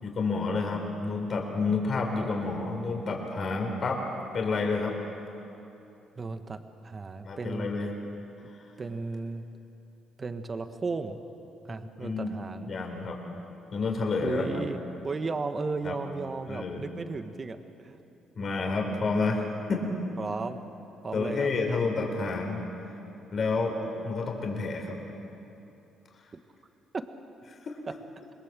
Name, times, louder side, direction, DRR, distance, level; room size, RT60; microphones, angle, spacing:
voice 1, 0.0-4.0 4.3-4.9 7.2-7.9 12.0-12.3 12.6-13.2 13.7-14.6 15.8-16.0 16.5-16.8 18.4-19.4 19.7-19.8 21.1-22.6 23.3-23.7 24.0-24.9 27.6-27.7, left 4 dB, 50° left, 2 dB, 4.3 m, -29 dB
voice 2, 6.2-7.8 8.8-9.4 10.2-11.2 11.6-12.8 14.2-17.6 17.8-18.0 20.2-20.6 21.0-21.8 26.9-27.0, right 3 dB, 35° right, 8 dB, 1.4 m, -34 dB
26.5 x 21.0 x 7.6 m, 2.9 s
cardioid pair, 85°, 0 cm